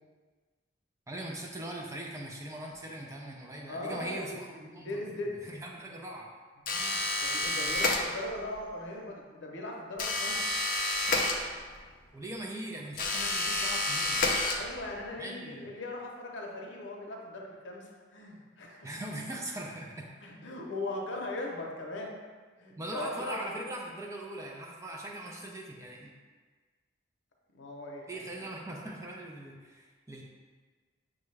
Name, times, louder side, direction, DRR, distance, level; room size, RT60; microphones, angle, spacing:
voice 1, 1.1-6.3 12.1-14.2 15.2-15.7 18.8-20.1 22.8-26.1 28.1-30.2, right 1 dB, 15° right, -1 dB, 0.4 m, -41 dB
voice 2, 3.7-5.4 5.8-5.9 6.7-10.4 14.5-19.2 20.2-22.1 22.6-23.4 27.5-28.4, left 2 dB, 80° left, 0 dB, 0.7 m, -39 dB
sound 1, 6.7-8.5 10.0-11.9 12.9-15.0, left 2 dB, 45° left, 0.4 m, -30 dB
6.2 x 2.3 x 3.2 m, 1.4 s
head